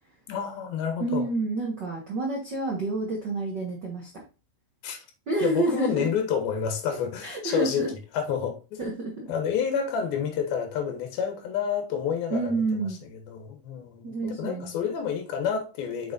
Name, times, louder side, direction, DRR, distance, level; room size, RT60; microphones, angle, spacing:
voice 1, 0.3-1.2 4.8-5.0 5.4-8.8 9.3-16.1, left 7 dB, 80° left, 3.1 m, -29 dB
voice 2, 1.0-4.1 5.3-6.1 7.2-7.9 8.8-9.3 12.3-13.0 14.0-14.7, right 2 dB, 85° right, 0.9 m, -28 dB
7.0 x 5.5 x 2.6 m
omnidirectional pair, 4.2 m